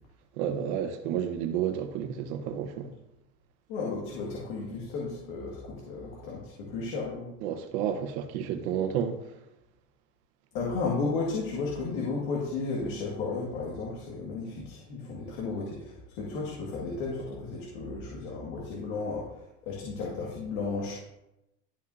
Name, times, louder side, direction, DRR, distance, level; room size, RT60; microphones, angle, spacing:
voice 1, 0.4-2.9 7.4-9.2, right 9 dB, 85° right, 1.1 m, -31 dB
voice 2, 3.7-7.3 10.5-19.2 19.6-21.0, left 4 dB, 80° left, 2.1 m, -33 dB
12.5 x 5.5 x 2.7 m
cardioid pair, 160°, 32 cm